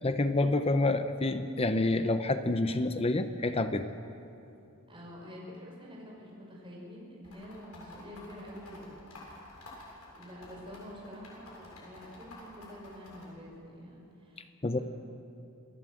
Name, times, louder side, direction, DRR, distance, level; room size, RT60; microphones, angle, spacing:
voice 1, 0.0-3.8 14.6-14.8, left 2 dB, 25° left, 9 dB, 0.8 m, -28 dB
voice 2, 4.9-8.9 10.1-14.8, equal, 25° right, -4 dB, 6.0 m, -47 dB
sound 1, 7.2-13.3, left 2 dB, 85° left, 7.1 m, -51 dB
27.5 x 16.5 x 7.9 m, 2.7 s
head